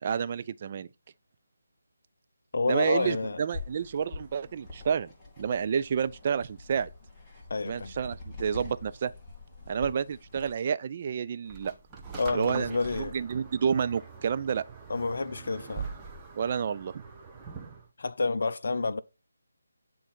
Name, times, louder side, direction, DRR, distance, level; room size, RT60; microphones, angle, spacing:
voice 1, 0.0-0.9 2.7-5.1 5.4-6.9 7.7-9.1 9.7-11.7 12.3-14.6 16.4-16.9, right 7 dB, 30° right, 0.4 m, -29 dB
voice 2, 2.5-3.4 7.5-7.9 12.2-13.2 14.9-15.9 18.0-19.0, left 3 dB, 50° left, 0.5 m, -29 dB
sound 1, 3.5-10.5, left 3 dB, 5° left, 1.9 m, -45 dB
sound 2, 11.5-17.9, right 5 dB, 15° right, 1.1 m, -43 dB
9.8 x 3.9 x 6.0 m
figure-of-eight pair, 155°, 0 cm